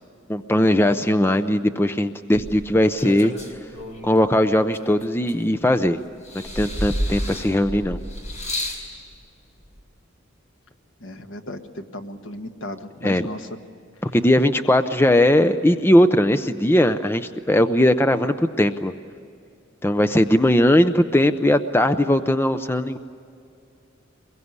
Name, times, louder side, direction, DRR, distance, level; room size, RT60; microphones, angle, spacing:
voice 1, 0.3-3.3 4.0-6.0 6.6-8.0 13.0-13.2 14.0-18.9 19.8-23.0, left 1 dB, 10° left, 9 dB, 0.6 m, -19 dB
sound 1, 2.4-4.2 4.7-5.8 6.2-8.9 9.8-9.9, equal, 35° left, 4.6 m, -30 dB
voice 2, 11.0-13.5 14.1-14.2, left 1 dB, 65° left, 6 dB, 1.6 m, -35 dB
24.0 x 22.0 x 9.6 m, 2.4 s
head